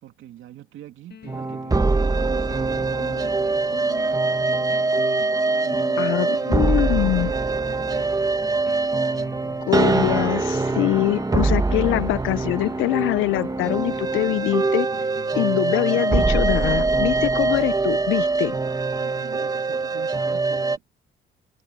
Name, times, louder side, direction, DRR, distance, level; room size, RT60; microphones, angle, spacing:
voice 1, 0.0-4.4 4.9-5.1 5.6-8.3 19.0-20.9, right 12 dB, 80° right, 2.6 m, -43 dB
sound 1, 1.1-17.0, left 8 dB, 55° left, 3.1 m, -41 dB
sound 2, 1.3-20.8, right 3 dB, 20° right, 1.3 m, -23 dB
voice 2, 6.0-7.3 9.7-14.9 15.4-18.6, left 17 dB, 85° left, 0.5 m, -23 dB
cardioid pair, 90°, 20 cm